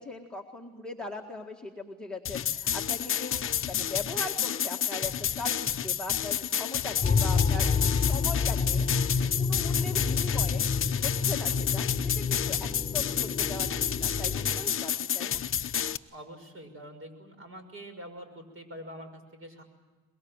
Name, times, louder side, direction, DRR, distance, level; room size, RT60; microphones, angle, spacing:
voice 1, 0.0-7.7 8.0-10.6 11.0-15.4, left 3 dB, ahead, 4 dB, 1.8 m, -40 dB
sound 1, 2.2-16.0, left 9 dB, 35° left, 0.8 m, -30 dB
sound 2, 7.0-14.6, left 5 dB, 20° left, 3.6 m, -29 dB
voice 2, 7.6-8.2 16.1-19.6, equal, 35° right, 7 dB, 5.9 m, -45 dB
23.5 x 22.0 x 8.8 m, 1.3 s
cardioid pair, 125°, 37 cm